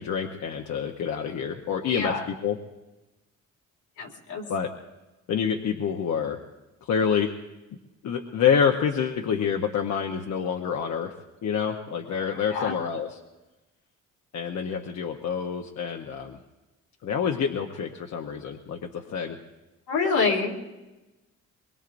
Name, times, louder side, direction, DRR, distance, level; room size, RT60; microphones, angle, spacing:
voice 1, 0.0-2.6 4.5-4.7 5.3-6.4 6.8-7.3 8.0-11.1 11.4-13.2 14.3-16.4 17.0-19.4, left 7 dB, 65° left, 3 dB, 1.0 m, -27 dB
voice 2, 1.9-2.3 4.0-4.4 12.3-12.8 19.9-20.6, left 4 dB, 85° left, -1 dB, 2.6 m, -27 dB
23.0 x 21.5 x 2.6 m, 1.1 s
cardioid pair, 90°, 30 cm